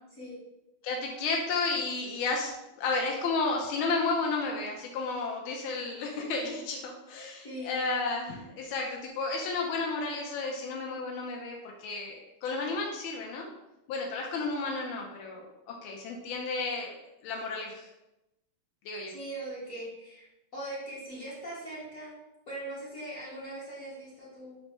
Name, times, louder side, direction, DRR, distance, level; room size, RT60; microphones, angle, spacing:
voice 1, 0.8-13.5 13.9-17.0 17.2-17.9 18.8-19.1, left 3 dB, 75° left, 0 dB, 1.4 m, -32 dB
voice 2, 7.4-7.8 19.1-20.3 20.5-22.2 22.5-24.6, right 1 dB, 50° left, -9 dB, 1.1 m, -40 dB
4.4 x 2.1 x 4.2 m, 0.94 s
omnidirectional pair, 2.4 m